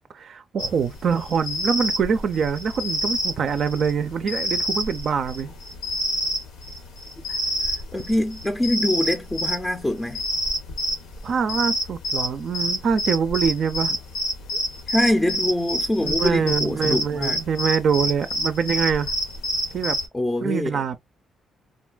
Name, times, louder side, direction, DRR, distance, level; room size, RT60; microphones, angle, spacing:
voice 1, 0.1-5.5 7.3-7.4 11.2-14.0 16.0-19.1 19.7-20.0 20.4-21.0, right 6 dB, 60° right, 0.4 m, -24 dB
sound 1, 0.6-20.1, equal, 90° left, 0.9 m, -28 dB
voice 2, 7.7-10.2 14.9-17.4 20.1-20.8, left 1 dB, 15° left, 0.5 m, -24 dB
3.7 x 2.2 x 2.3 m
cardioid pair, 90°, 0 cm